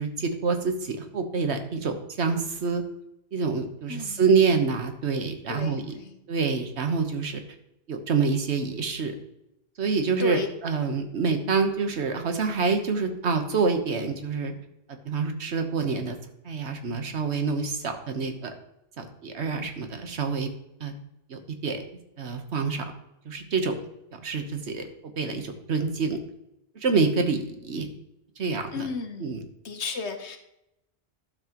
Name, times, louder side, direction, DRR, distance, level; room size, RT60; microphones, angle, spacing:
voice 1, 0.0-2.8 3.3-5.8 6.3-7.4 7.9-9.1 9.8-14.5 14.9-16.2 16.4-18.5 19.0-20.5 20.8-20.9 21.3-21.8 22.2-22.9 23.2-23.8 24.2-24.9 25.2-26.2 26.7-27.9 28.4-28.9 29.2-29.4, right 4 dB, 80° right, 6 dB, 1.4 m, -27 dB
voice 2, 3.9-4.2 5.5-6.2 10.2-10.5 11.3-11.4 28.7-29.4 29.6-30.4, left 4 dB, 90° left, 6 dB, 1.4 m, -34 dB
11.5 x 7.2 x 3.0 m, 0.85 s
omnidirectional pair, 1.1 m